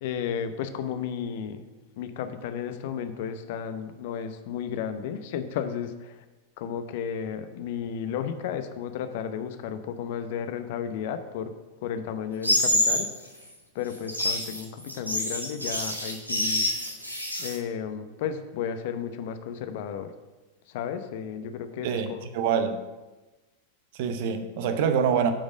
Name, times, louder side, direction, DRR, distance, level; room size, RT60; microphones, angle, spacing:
voice 1, 0.0-1.6 2.0-6.2 6.6-11.5 11.8-13.1 13.7-16.7 17.4-20.1 20.7-22.2, left 8 dB, 50° left, 0.8 m, -33 dB
sound 1, 12.4-13.1 13.9-17.6, left 1 dB, 90° right, 1.4 m, -26 dB
voice 2, 21.8-22.8 23.9-25.3, right 7 dB, 50° right, 0.8 m, -25 dB
8.7 x 5.3 x 6.2 m
figure-of-eight pair, 90°, 0 cm